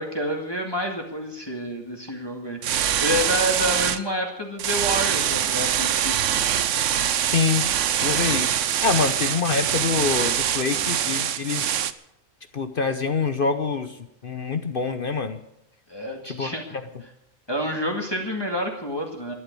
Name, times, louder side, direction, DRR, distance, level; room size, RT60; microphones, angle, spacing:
voice 1, 0.0-6.3 15.9-16.7 17.5-19.3, equal, 20° left, 1 dB, 2.0 m, -28 dB
sound 1, 2.6-4.0 4.6-11.9, right 10 dB, 70° right, 1.1 m, -24 dB
voice 2, 7.3-7.7 8.0-8.5 8.8-11.7 12.5-15.4 16.2-16.8, left 5 dB, 45° left, 9 dB, 1.0 m, -25 dB
12.5 x 11.5 x 8.4 m, 0.81 s
omnidirectional pair, 1.4 m